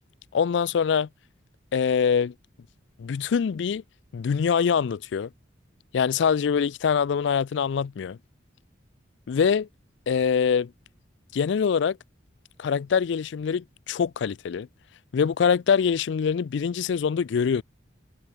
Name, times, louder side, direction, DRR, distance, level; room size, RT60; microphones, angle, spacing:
voice 1, 0.3-1.1 1.7-2.3 3.0-3.8 4.1-5.3 5.9-8.2 9.3-9.7 10.1-10.7 11.3-12.0 12.6-14.7 15.1-17.6, left 6 dB, 65° left, 0.4 m, -24 dB
head